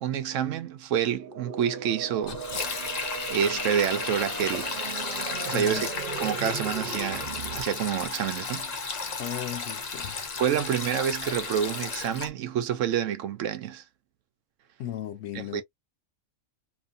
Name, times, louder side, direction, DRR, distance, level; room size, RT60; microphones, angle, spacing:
voice 1, 0.0-2.9 3.3-4.7 5.4-5.9 6.2-8.7 10.4-13.8 15.3-15.6, right 9 dB, 80° right, 0.9 m, -28 dB
sound 1, 1.1-7.6, right 6 dB, 45° right, 0.9 m, -38 dB
Sink (filling or washing), 2.2-12.3, left 4 dB, 45° left, 0.6 m, -33 dB
voice 2, 5.5-5.9 9.2-10.3 14.8-15.6, left 11 dB, 70° left, 1.0 m, -36 dB
2.9 x 2.5 x 2.4 m
omnidirectional pair, 1.3 m